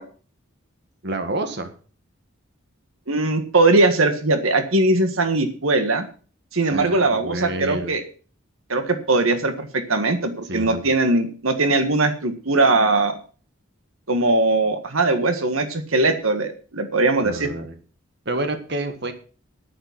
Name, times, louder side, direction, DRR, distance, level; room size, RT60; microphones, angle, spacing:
voice 1, 1.0-1.7 6.7-7.9 10.4-10.8 17.2-17.8 18.3-19.1, right 1 dB, 55° right, 7 dB, 1.7 m, -28 dB
voice 2, 3.1-6.1 6.5-8.0 8.7-13.2 14.1-17.5, right 2 dB, 85° right, 8 dB, 1.7 m, -20 dB
10.5 x 10.0 x 5.9 m, 0.38 s
head